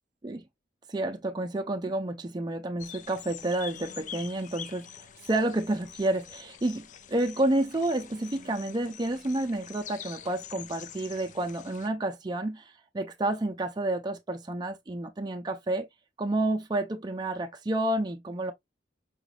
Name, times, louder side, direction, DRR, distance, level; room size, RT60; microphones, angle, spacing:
voice 1, 0.9-15.9 16.2-18.5, right 1 dB, 25° right, 0.4 m, -30 dB
sound 1, 2.8-11.9, left 8 dB, 45° left, 0.4 m, -46 dB
4.9 x 3.2 x 2.3 m
head